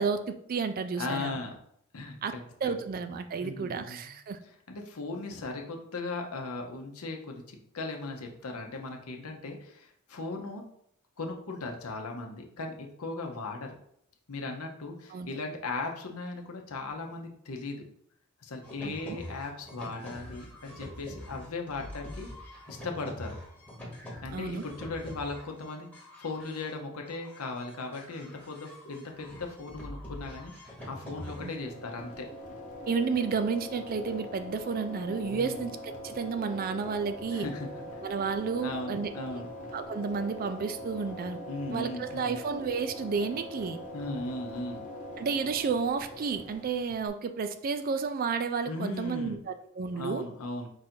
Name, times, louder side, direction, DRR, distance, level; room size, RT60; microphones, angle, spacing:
voice 1, 0.0-1.4 2.2-2.3 2.6-4.4 15.1-15.3 18.8-19.2 24.3-24.7 31.4-31.5 32.9-37.5 38.0-39.1 39.7-41.4 41.7-43.8 45.2-50.3, right 5 dB, 40° right, 10 dB, 0.3 m, -31 dB
voice 2, 1.0-1.6 1.9-2.8 3.4-4.1 4.4-10.7 11.2-13.7 14.3-17.8 18.4-22.3 22.7-23.4 24.2-25.9 26.2-32.3 35.3-35.6 37.3-37.7 38.6-39.5 41.5-42.4 43.9-44.9 48.6-49.4 49.9-50.7, left 3 dB, 75° left, 2 dB, 0.8 m, -38 dB
sound 1, 18.6-31.5, left 1 dB, 5° left, 1.0 m, -45 dB
sound 2, 31.1-47.1, left 1 dB, 35° left, 1.1 m, -42 dB
4.8 x 2.6 x 4.3 m, 0.71 s
head